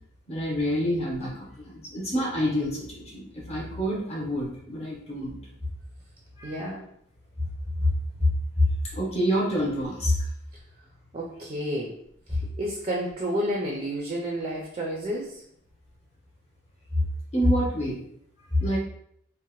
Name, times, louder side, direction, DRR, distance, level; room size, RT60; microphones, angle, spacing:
voice 1, 0.3-5.3 6.4-6.5 7.8-7.9 8.2-10.2 17.3-18.0 18.5-18.8, left 1 dB, 30° left, -4 dB, 0.8 m, -26 dB
voice 2, 6.4-6.9 10.5-10.6 11.1-12.0 12.3-15.4, equal, 30° right, -1 dB, 0.3 m, -31 dB
2.7 x 2.0 x 2.9 m, 0.72 s
head